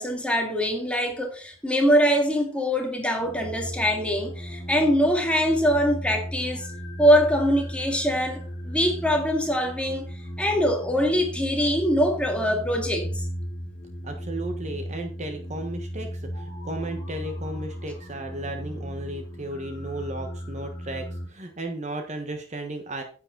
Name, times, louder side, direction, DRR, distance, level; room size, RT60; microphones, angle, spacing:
voice 1, 0.0-6.7 7.0-10.1 10.4-13.2, equal, 5° left, 2.0 m, -23 dB
sound 1, 3.2-21.3, equal, 30° left, 3.5 m, -36 dB
voice 2, 14.0-23.0, right 1 dB, 35° right, 1.2 m, -34 dB
9.9 x 8.8 x 3.9 m
head